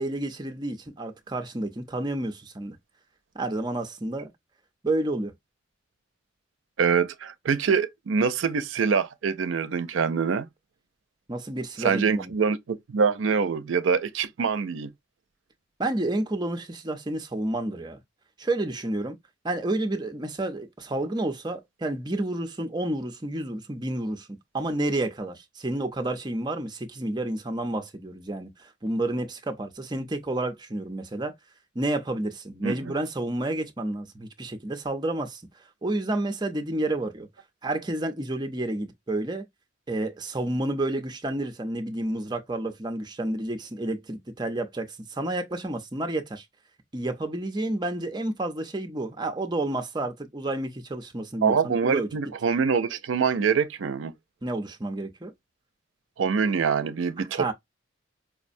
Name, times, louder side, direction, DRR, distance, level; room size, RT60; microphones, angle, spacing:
voice 1, 0.0-2.8 3.3-4.3 4.8-5.3 11.3-12.3 15.8-18.0 18.4-19.2 19.4-24.3 24.5-31.3 31.7-35.4 35.8-37.3 37.6-39.4 39.9-46.4 46.9-52.1 54.4-55.3 57.2-57.5, right 1 dB, 20° right, 0.6 m, -30 dB
voice 2, 6.8-10.5 11.8-14.9 32.6-32.8 51.4-54.1 56.2-57.5, right 6 dB, 85° right, 0.4 m, -25 dB
4.9 x 2.1 x 2.5 m
head